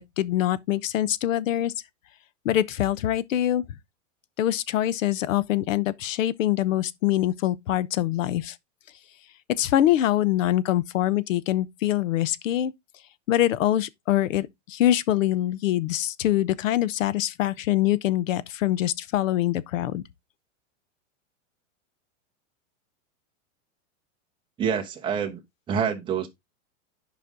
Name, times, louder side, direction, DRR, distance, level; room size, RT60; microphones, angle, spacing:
voice 1, 0.0-1.7 2.4-3.6 4.4-8.6 9.6-12.7 13.3-20.0, left 13 dB, 80° left, 0.9 m, -24 dB
voice 2, 24.6-25.4 25.7-26.3, right 7 dB, 10° right, 1.1 m, -26 dB
10.5 x 5.3 x 3.8 m
supercardioid pair, 170°, 39 cm